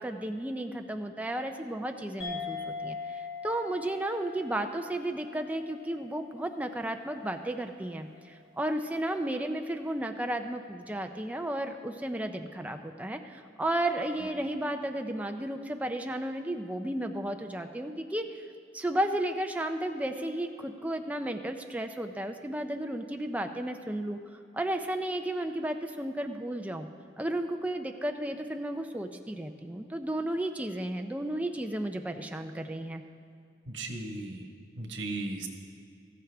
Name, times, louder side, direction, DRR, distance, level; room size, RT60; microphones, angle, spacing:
voice 1, 0.0-18.5 18.7-24.2 24.5-26.9 27.2-33.0, right 1 dB, 10° right, 5 dB, 0.4 m, -33 dB
sound 1, 2.2-7.1, left 4 dB, 60° left, 2.2 m, -41 dB
voice 2, 33.7-34.4 34.8-35.5, right 2 dB, 85° right, 3 dB, 1.4 m, -36 dB
14.5 x 13.5 x 3.4 m, 2.5 s
head